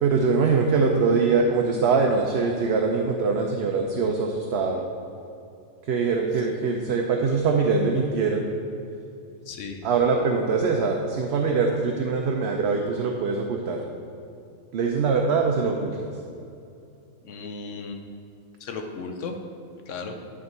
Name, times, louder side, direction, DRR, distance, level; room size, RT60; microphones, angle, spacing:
voice 1, 0.0-4.9 5.9-8.5 9.8-13.8 14.7-16.1, right 4 dB, 60° right, 2 dB, 0.8 m, -23 dB
voice 2, 9.5-9.9 17.2-18.0 18.6-19.4 19.9-20.2, left 4 dB, 65° left, 4 dB, 1.0 m, -35 dB
10.5 x 3.7 x 5.4 m, 2.6 s
omnidirectional pair, 1.4 m